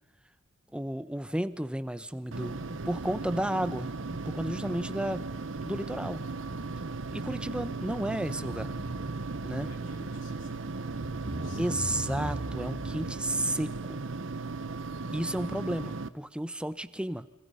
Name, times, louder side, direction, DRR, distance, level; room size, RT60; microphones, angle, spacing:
voice 1, 0.7-5.2 5.6-6.2 7.1-8.7 9.4-9.7 10.0-10.1 11.6-14.0 15.1-17.3, right 1 dB, 5° right, 13 dB, 0.9 m, -33 dB
sound 1, 2.3-16.1, right 3 dB, 85° right, 1.0 m, -37 dB
sound 2, 3.0-13.7, equal, 60° right, 3.0 m, -44 dB
voice 2, 4.7-5.2 9.4-11.7, left 2 dB, 70° left, 7 dB, 3.6 m, -56 dB
29.0 x 25.0 x 5.6 m, 0.99 s
head